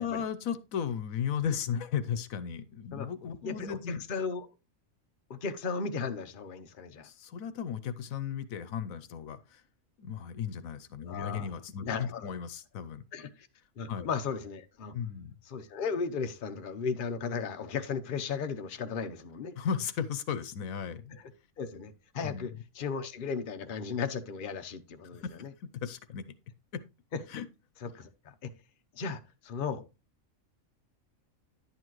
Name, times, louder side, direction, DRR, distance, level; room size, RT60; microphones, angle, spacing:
voice 1, 0.0-4.0 7.0-9.6 10.0-13.0 13.9-14.1 14.9-15.3 19.6-21.1 22.2-22.5 25.1-25.3 25.6-26.2 26.7-26.8 27.3-27.4, left 7 dB, 80° left, 1.2 m, -35 dB
voice 2, 3.4-4.5 5.3-7.1 11.1-11.5 11.8-12.3 13.1-13.3 13.8-14.9 15.5-19.6 21.1-21.2 21.6-25.5 27.1-27.2 27.8-28.5 29.0-29.8, left 5 dB, 45° left, 0.9 m, -36 dB
10.5 x 8.3 x 3.1 m
omnidirectional pair, 1.4 m